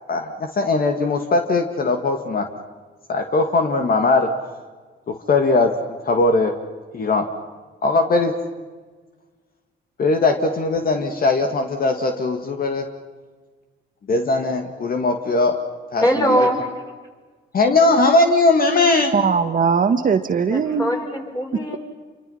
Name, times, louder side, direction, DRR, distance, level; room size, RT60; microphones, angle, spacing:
voice 1, 0.1-2.5 3.1-4.3 5.1-6.6 6.9-7.3 7.8-8.4 10.0-12.9 14.1-15.6 15.9-16.2 17.5-19.1, left 3 dB, 45° left, 2.1 m, -19 dB
voice 2, 16.0-16.6 18.8-18.9 20.5-21.8, equal, 20° left, 6.5 m, -21 dB
voice 3, 19.1-20.9, right 6 dB, 45° right, 1.5 m, -19 dB
27.5 x 25.0 x 5.8 m
cardioid pair, 90°, 20 cm